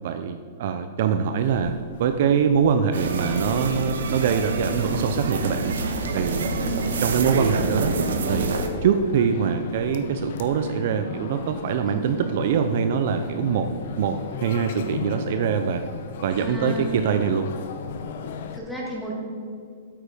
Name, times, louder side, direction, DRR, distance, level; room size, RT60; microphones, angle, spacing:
voice 1, 0.0-1.7 2.0-5.8 6.1-6.5 7.0-7.9 8.3-13.7 14.0-15.8 16.2-17.5, right 7 dB, 50° right, 8 dB, 0.5 m, -23 dB
sound 1, 1.3-18.6, left 6 dB, 50° left, 0.7 m, -38 dB
sound 2, 2.9-8.7, right 3 dB, 85° right, 1.2 m, -27 dB
voice 2, 6.6-7.0 11.9-12.2 16.4-17.0 18.5-19.1, equal, ahead, -5 dB, 1.9 m, -34 dB
8.5 x 7.9 x 5.0 m, 2.2 s
hypercardioid pair, 165°, 0 cm